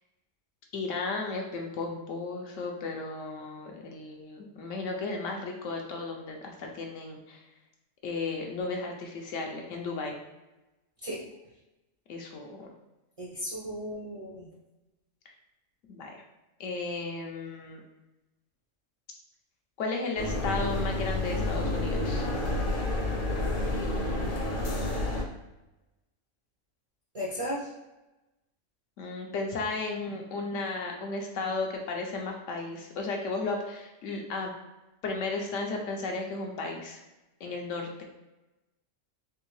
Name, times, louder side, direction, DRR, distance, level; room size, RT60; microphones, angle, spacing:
voice 1, 0.7-7.4 8.0-10.2 12.1-12.7 15.9-16.2 16.6-17.8 19.8-22.2 29.0-34.5 35.0-37.0 37.4-38.0, left 3 dB, 75° left, 1 dB, 1.0 m, -34 dB
voice 2, 13.2-14.5 27.1-27.7, equal, 35° right, -6 dB, 0.6 m, -35 dB
sound 1, 20.2-25.2, left 2 dB, 50° left, 0.8 m, -29 dB
3.5 x 3.0 x 3.1 m, 1.0 s
omnidirectional pair, 1.3 m